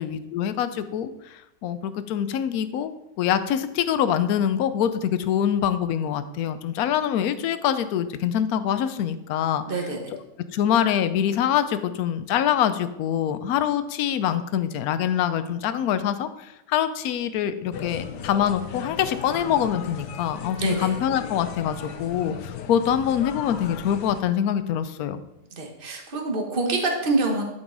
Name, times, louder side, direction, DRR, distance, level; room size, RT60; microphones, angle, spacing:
voice 1, 0.0-9.6 10.1-10.2 10.5-25.2, left 9 dB, 70° left, 11 dB, 1.0 m, -25 dB
voice 2, 9.7-10.0 20.6-20.9 25.5-27.4, right 3 dB, 35° right, 2 dB, 1.4 m, -26 dB
sound 1, 17.7-24.2, left 8 dB, 85° left, 1.4 m, -37 dB
12.0 x 5.4 x 4.0 m, 0.89 s
omnidirectional pair, 1.8 m